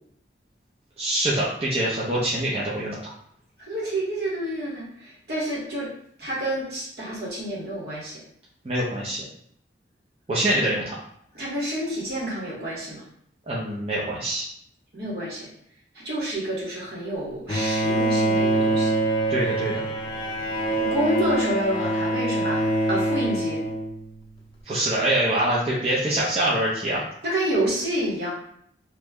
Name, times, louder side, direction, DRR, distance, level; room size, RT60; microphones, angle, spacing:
voice 1, 1.0-3.1 8.6-9.2 10.3-11.0 13.5-14.5 19.3-19.8 24.6-27.0, right 1 dB, 35° right, -6 dB, 0.5 m, -24 dB
voice 2, 3.6-5.9 6.2-8.2 11.3-13.0 14.9-15.5 15.9-19.0 20.8-23.6 27.2-28.3, right 1 dB, 60° right, -6 dB, 1.2 m, -28 dB
Bowed string instrument, 17.5-24.3, right 1 dB, 25° left, 0.4 m, -25 dB
3.0 x 2.2 x 3.5 m, 0.67 s
head